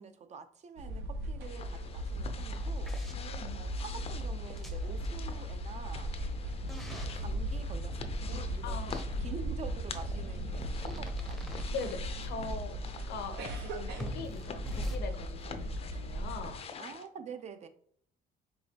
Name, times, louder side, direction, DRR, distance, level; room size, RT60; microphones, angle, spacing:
voice 1, 0.0-3.0 3.5-6.1 7.1-11.5 16.8-17.7, right 6 dB, 40° right, 9 dB, 0.5 m, -47 dB
sound 1, 0.8-16.6, equal, 80° right, 0.9 m, -37 dB
sound 2, 1.4-17.1, left 6 dB, 35° left, 0.5 m, -47 dB
sound 3, 2.9-3.1 4.5-5.1 6.7-7.2 8.9-9.0 10.6-11.9 14.0-15.0, equal, ahead, 0.7 m, -44 dB
voice 2, 3.1-3.6 8.6-9.0 11.7-12.8 13.1-16.6, left 4 dB, 75° left, 8 dB, 0.7 m, -41 dB
4.7 x 3.2 x 2.8 m, 0.62 s
cardioid pair, 110°, 17 cm